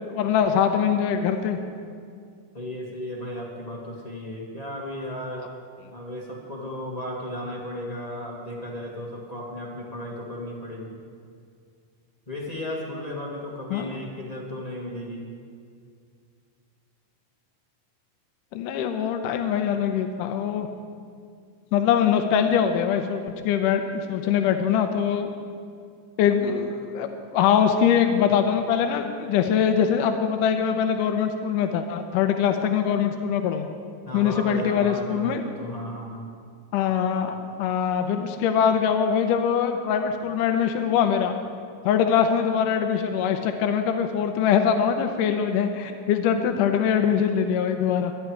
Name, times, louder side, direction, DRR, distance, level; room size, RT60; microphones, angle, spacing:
voice 1, 0.1-1.6 13.7-13.9 18.5-20.7 21.7-25.3 26.2-33.7 34.1-35.4 36.7-41.4 41.9-48.1, left 8 dB, 85° left, 6 dB, 2.3 m, -23 dB
voice 2, 2.5-5.5 5.9-11.0 12.3-15.2 34.0-36.3, left 1 dB, 30° left, -2 dB, 0.6 m, -35 dB
23.5 x 10.0 x 4.7 m, 2.2 s
omnidirectional pair, 3.7 m